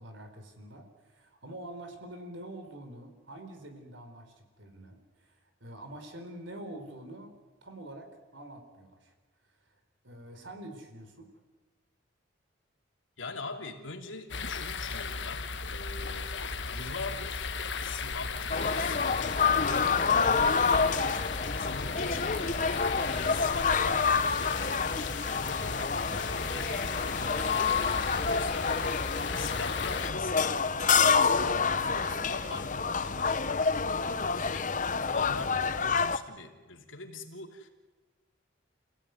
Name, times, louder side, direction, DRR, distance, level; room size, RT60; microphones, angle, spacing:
voice 1, 0.0-7.3 7.6-9.1 9.5-9.6 10.0-11.3, right 1 dB, 80° right, 6 dB, 4.4 m, -46 dB
voice 2, 13.2-16.3 16.6-17.5 17.8-20.0 20.6-22.6 23.1-30.5 31.0-34.7 35.1-37.7, left 3 dB, 85° left, 3 dB, 3.1 m, -43 dB
sound 1, 14.3-30.1, left 4 dB, 70° left, 1.5 m, -36 dB
sound 2, 18.5-36.2, left 5 dB, 40° left, 0.8 m, -28 dB
sound 3, 26.1-33.6, right 1 dB, 20° right, 1.8 m, -50 dB
28.5 x 17.0 x 9.5 m, 1.3 s
head